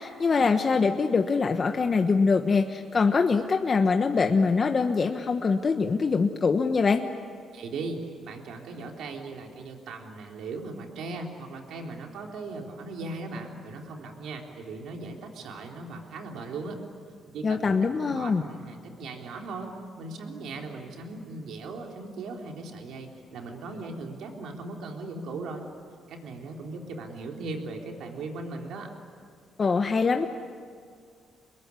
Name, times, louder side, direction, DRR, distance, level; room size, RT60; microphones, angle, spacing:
voice 1, 0.0-7.0 17.4-18.4 29.6-30.3, left 4 dB, 40° left, 5 dB, 1.3 m, -23 dB
voice 2, 7.5-16.8 17.3-25.7 26.1-28.9, right 3 dB, 75° right, 2 dB, 3.8 m, -38 dB
27.0 x 22.0 x 9.9 m, 2.2 s
cardioid pair, 90°, 0 cm